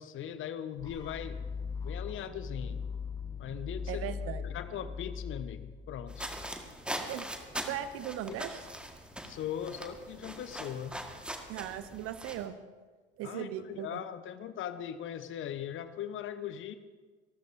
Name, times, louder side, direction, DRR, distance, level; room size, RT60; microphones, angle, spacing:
voice 1, 0.0-1.5 1.8-2.8 3.4-4.1 4.4-6.3 8.3-8.4 9.2-11.0 13.2-16.8, left 9 dB, 40° left, 12 dB, 1.0 m, -39 dB
sound 1, 0.8-6.7, left 5 dB, 15° left, 1.2 m, -40 dB
voice 2, 3.9-4.4 7.0-7.3 7.7-8.7 11.5-12.5 13.2-14.0, right 11 dB, 45° right, 12 dB, 0.9 m, -38 dB
sound 2, 6.1-12.5, right 1 dB, 5° right, 1.6 m, -41 dB
26.0 x 13.0 x 2.7 m, 1.4 s
figure-of-eight pair, 60°, 31 cm